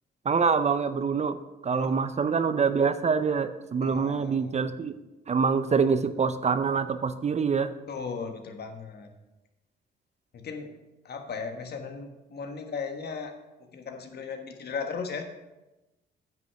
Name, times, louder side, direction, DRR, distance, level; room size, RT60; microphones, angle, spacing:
voice 1, 0.2-1.4 1.6-5.0 5.3-7.7, right 5 dB, 35° right, 11 dB, 0.5 m, -25 dB
voice 2, 3.8-4.6 7.9-9.1 10.3-10.7 11.0-13.3 13.7-15.2, left 5 dB, 55° left, 5 dB, 1.4 m, -36 dB
9.3 x 5.6 x 5.8 m, 1.0 s
cardioid pair, 90°, 20 cm